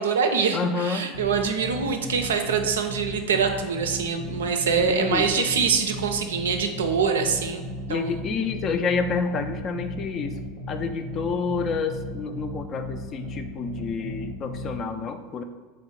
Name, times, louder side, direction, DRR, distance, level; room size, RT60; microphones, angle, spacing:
voice 1, 0.0-8.1, right 6 dB, 70° right, 5 dB, 0.4 m, -24 dB
voice 2, 0.5-1.1 4.9-5.5 7.9-10.4 10.7-15.4, left 5 dB, 40° left, 8 dB, 0.3 m, -28 dB
sound 1, 1.1-14.8, left 1 dB, 65° left, 0.7 m, -36 dB
3.6 x 2.1 x 4.1 m, 1.4 s
figure-of-eight pair, 80°, 0 cm